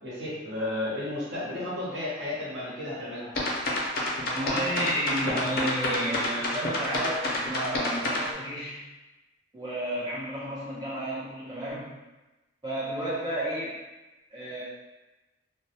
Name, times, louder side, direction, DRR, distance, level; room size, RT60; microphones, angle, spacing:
voice 1, 0.0-3.3, left 1 dB, 60° right, -8 dB, 0.9 m, -33 dB
sound 1, 3.4-8.3, left 2 dB, 50° left, 0.5 m, -28 dB
voice 2, 4.3-8.8 9.5-11.9 12.6-13.8 14.3-14.6, equal, 20° right, -8 dB, 0.6 m, -32 dB
2.2 x 2.0 x 2.7 m, 1.1 s
head